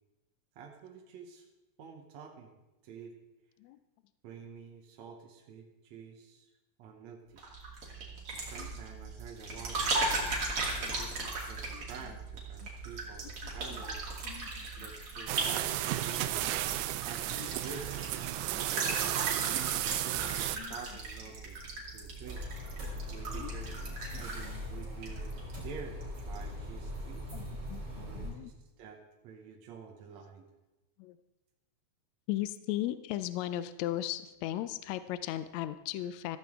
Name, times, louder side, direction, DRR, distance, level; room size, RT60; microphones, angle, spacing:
voice 1, 0.6-1.5 1.8-2.6 2.8-3.1 4.2-6.5 6.8-7.4 8.3-9.9 10.7-14.0 14.7-17.9 18.8-21.6 21.9-22.4 23.1-23.8 24.2-25.4 25.6-27.2 28.0-30.5, right 6 dB, 70° right, 1 dB, 2.2 m, -49 dB
sound 1, 7.4-25.7 26.0-26.4, right 2 dB, 50° right, 3.3 m, -38 dB
voice 2, 13.4-13.8 14.2-14.9 17.3-17.5 18.3-18.7 19.3-19.9 20.5-20.8 23.3-23.5 24.3-24.6 27.3-28.5 31.0-31.2 32.3-36.4, left 13 dB, 80° left, 12 dB, 1.7 m, -38 dB
sound 2, 15.3-20.6, right 15 dB, 90° right, 2.1 m, -33 dB
sound 3, 22.2-28.3, left 1 dB, 35° right, 4.7 m, -40 dB
15.0 x 14.0 x 3.6 m, 1.0 s
omnidirectional pair, 3.5 m